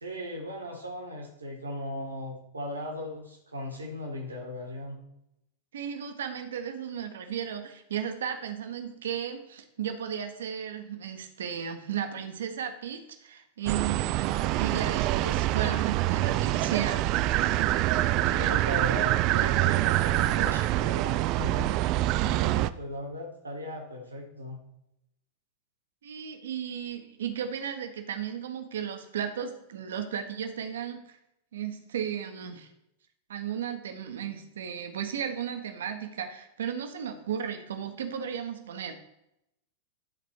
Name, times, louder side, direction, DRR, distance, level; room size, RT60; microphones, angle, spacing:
voice 1, 0.0-5.0 18.3-21.7 22.2-24.6, left 1 dB, 80° right, 0 dB, 1.8 m, -37 dB
voice 2, 5.7-17.0 26.0-31.2 31.5-32.7 33.3-38.9, right 8 dB, 65° right, 7 dB, 1.1 m, -35 dB
sound 1, 13.7-22.7, right 15 dB, 40° right, 0.3 m, -25 dB
12.0 x 4.0 x 4.6 m, 0.84 s
figure-of-eight pair, 90°, 0 cm